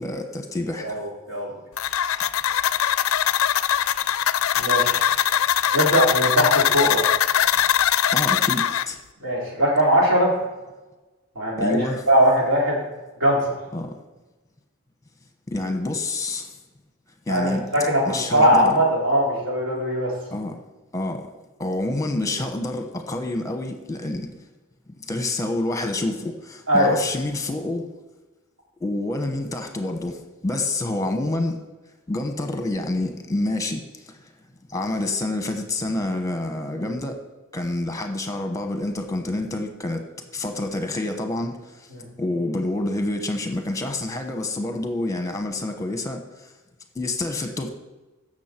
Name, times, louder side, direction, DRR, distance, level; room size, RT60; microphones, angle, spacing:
voice 1, 0.0-1.0 8.1-9.0 11.6-12.0 13.7-13.9 15.5-16.6 17.3-17.6 18.1-18.7 20.3-20.6 20.9-21.3 21.6-24.3 25.0-27.9 28.8-31.6 32.1-34.3 34.7-37.2 37.5-40.0 40.3-41.9 42.2-46.5 46.9-47.7, left 2 dB, 15° left, 5 dB, 1.0 m, -27 dB
voice 2, 0.8-1.5 4.5-5.1 5.7-7.0 9.2-10.3 11.4-12.8 13.2-13.4 17.3-20.1 26.7-26.9 41.9-42.1, equal, 70° right, -4 dB, 3.8 m, -20 dB
sound 1, 1.8-8.8, left 10 dB, 80° left, 0.4 m, -21 dB
15.5 x 6.4 x 4.5 m, 1.2 s
head